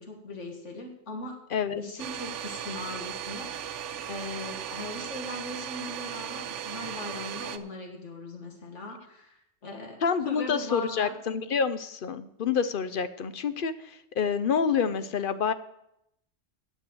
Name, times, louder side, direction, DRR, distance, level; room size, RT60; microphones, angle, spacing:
voice 1, 0.0-1.4 1.7-11.1, left 2 dB, 75° left, 2 dB, 2.0 m, -39 dB
voice 2, 1.5-1.8 10.0-15.5, left 6 dB, 55° left, 12 dB, 0.7 m, -28 dB
Domestic sounds home sounds, 2.0-7.6, right 9 dB, 85° right, 1.0 m, -37 dB
9.6 x 7.7 x 7.7 m, 0.80 s
omnidirectional pair, 1.2 m